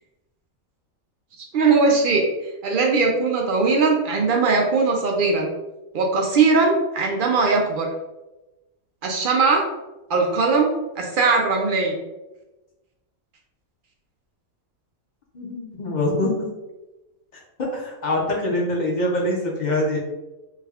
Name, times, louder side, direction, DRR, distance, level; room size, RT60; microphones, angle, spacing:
voice 1, 1.5-2.2 2.6-5.5 5.9-7.9 9.0-9.7 10.1-10.7 11.0-12.0, right 4 dB, 75° right, 0 dB, 0.4 m, -20 dB
voice 2, 15.3-16.3 17.6-20.0, left 1 dB, 40° left, -2 dB, 0.7 m, -24 dB
3.4 x 2.3 x 3.3 m, 1.0 s
omnidirectional pair, 1.5 m